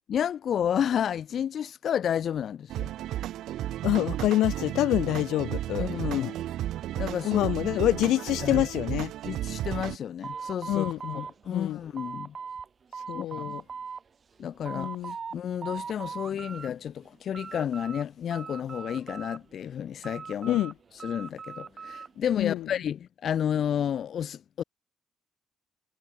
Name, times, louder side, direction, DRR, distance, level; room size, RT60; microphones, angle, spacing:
voice 1, 0.1-2.9 5.8-6.3 7.0-7.8 8.4-8.7 9.2-10.9 11.1-12.3 13.1-13.6 14.4-20.6 21.0-24.6, left 9 dB, 60° left, 2.1 m, -31 dB
sound 1, 2.7-10.0, right 13 dB, 80° right, 1.0 m, -33 dB
voice 2, 3.8-6.3 7.2-9.1 10.7-11.8 13.1-13.6 14.7-15.2 20.5-20.7 22.4-22.7, left 14 dB, 85° left, 3.4 m, -27 dB
sound 2, 10.2-12.7 12.9-14.0 14.4-15.3 15.6-16.7 17.0-18.0 18.3-19.6 20.0-22.1, right 6 dB, 40° right, 2.6 m, -40 dB
cardioid pair, 90°, 0 cm